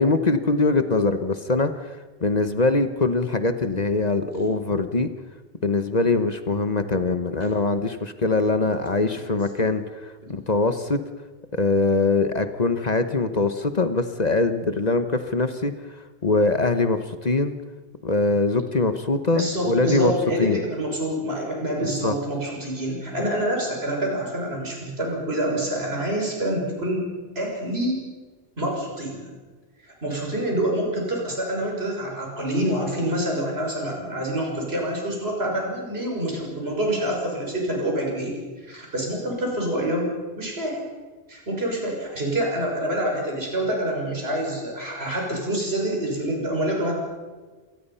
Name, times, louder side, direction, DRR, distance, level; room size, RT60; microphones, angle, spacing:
voice 1, 0.0-2.0 2.2-5.1 5.6-11.0 11.5-15.7 16.2-17.5 18.0-20.1 20.4-20.6 22.0-22.1, left 3 dB, 40° left, 10 dB, 1.2 m, -22 dB
voice 2, 19.3-27.1 27.3-28.0 28.6-29.2 29.8-40.9 41.3-46.9, right 1 dB, 75° right, -1 dB, 6.4 m, -27 dB
26.5 x 19.0 x 5.6 m, 1.3 s
omnidirectional pair, 1.1 m